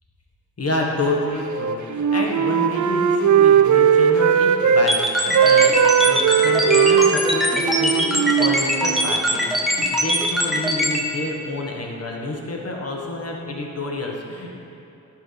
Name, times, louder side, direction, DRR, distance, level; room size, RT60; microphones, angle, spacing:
voice 1, 0.6-14.6, left 2 dB, 45° left, 0 dB, 1.5 m, -28 dB
Wind instrument woodwind instrument, 1.5-4.9 5.2-9.1, right 7 dB, 55° right, 0.5 m, -18 dB
sound 1, 4.9-11.0, equal, ahead, 1.2 m, -21 dB
10.5 x 5.8 x 3.4 m, 3.0 s
supercardioid pair, 40°, 35 cm